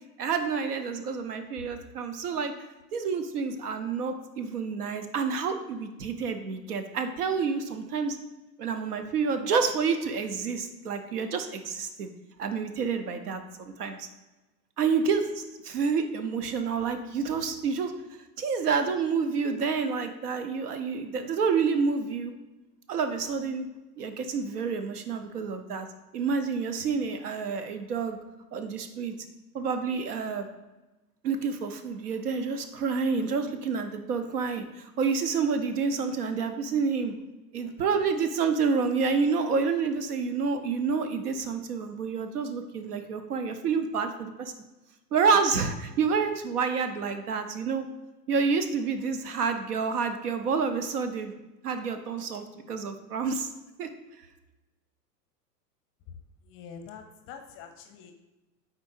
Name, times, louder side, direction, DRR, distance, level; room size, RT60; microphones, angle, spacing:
voice 1, 0.2-2.5 2.9-8.2 8.6-12.1 12.4-14.1 14.8-17.9 18.4-22.3 22.9-23.7 24.0-25.9 26.1-28.2 28.5-29.1 29.5-30.5 31.2-37.1 37.5-44.5 45.1-47.8 48.3-51.3 51.6-53.5 53.8-53.9, right 5 dB, 65° right, 8 dB, 0.9 m, -28 dB
voice 2, 56.4-58.1, left 6 dB, 25° left, 6 dB, 0.6 m, -45 dB
8.9 x 4.1 x 2.6 m, 1.1 s
figure-of-eight pair, 100°, 49 cm